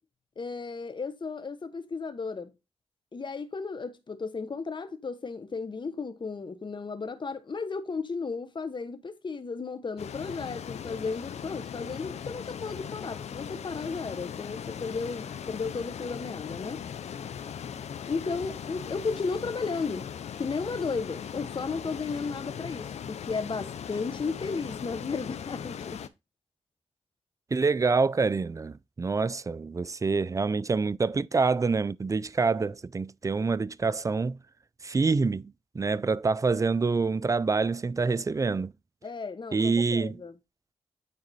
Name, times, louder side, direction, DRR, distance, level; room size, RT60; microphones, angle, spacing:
voice 1, 0.4-2.5 3.1-16.8 18.1-20.1 20.4-26.0 39.0-40.3, left 4 dB, 45° left, 1.1 m, -34 dB
sound 1, 10.0-26.1, left 8 dB, 80° left, 0.6 m, -39 dB
voice 2, 27.5-34.4 34.8-38.7 39.5-40.1, right 4 dB, 30° right, 0.4 m, -26 dB
9.2 x 3.8 x 4.1 m
cardioid pair, 60°, 11 cm